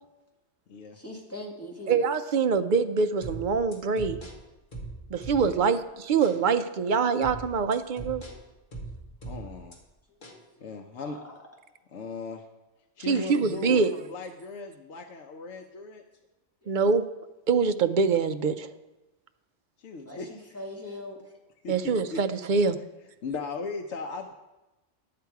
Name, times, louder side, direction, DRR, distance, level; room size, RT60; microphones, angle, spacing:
voice 1, 0.9-2.0 10.1-10.2 10.6-10.7 11.0-11.4 13.1-13.2 16.6-16.7 20.1-21.3, left 1 dB, 10° left, -2 dB, 1.8 m, -41 dB
voice 2, 1.9-4.2 5.1-8.2 13.1-13.9 16.7-17.0 17.5-18.7 21.7-22.8, right 5 dB, 55° right, 9 dB, 0.6 m, -24 dB
sound 1, 3.2-5.7 6.2-6.4 7.2-9.8 10.2-10.4, right 2 dB, 45° left, 1.6 m, -40 dB
voice 3, 9.2-9.8 10.6-11.2 11.9-12.5 13.0-16.0 19.8-20.4 21.6-21.7 22.1-22.2 23.2-24.3, left 4 dB, 75° left, 3 dB, 1.0 m, -37 dB
11.0 x 7.7 x 4.6 m, 1.0 s
omnidirectional pair, 1.2 m